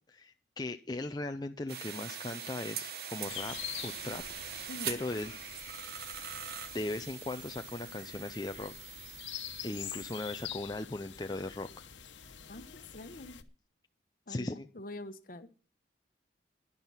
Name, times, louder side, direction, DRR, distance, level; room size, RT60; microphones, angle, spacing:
voice 1, 0.1-3.6 3.8-4.2 4.9-5.4 6.7-8.7 9.6-11.7 14.3-14.7, left 2 dB, 20° left, 6 dB, 0.5 m, -38 dB
sound 1, 1.7-10.5, right 7 dB, 55° right, 1.2 m, -43 dB
sound 2, 3.3-13.4, left 10 dB, 85° left, 1.1 m, -46 dB
voice 2, 4.7-5.0 12.5-12.7 12.9-13.4 14.3-15.5, left 1 dB, 50° left, 11 dB, 1.1 m, -45 dB
11.5 x 11.0 x 5.7 m, 0.37 s
head